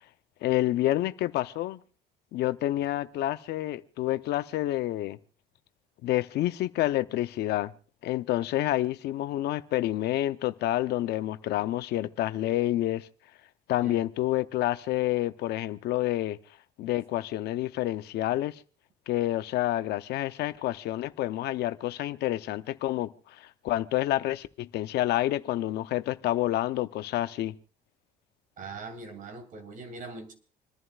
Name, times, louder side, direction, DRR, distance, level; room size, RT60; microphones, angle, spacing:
voice 1, 0.4-1.8 2.3-5.2 6.0-7.7 8.0-13.1 13.7-16.4 16.8-18.6 19.1-27.5, left 15 dB, 75° left, 0.7 m, -28 dB
voice 2, 28.6-30.3, right 3 dB, 55° right, 2.8 m, -41 dB
27.5 x 11.0 x 2.4 m
cardioid pair, 110°, 17 cm